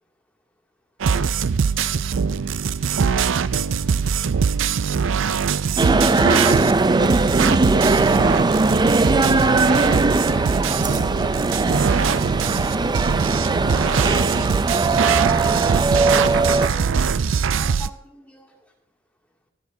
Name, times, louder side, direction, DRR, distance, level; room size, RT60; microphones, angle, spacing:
sound 1, 1.0-17.9, right 6 dB, 90° right, 0.5 m, -22 dB
voice 1, 2.9-4.0 5.5-6.3 9.1-14.1 14.6-16.9 17.3-18.6, equal, 5° left, 0 dB, 2.4 m, -44 dB
sound 2, 5.8-16.7, right 3 dB, 20° right, 0.5 m, -19 dB
27.0 x 9.3 x 2.7 m, 0.64 s
head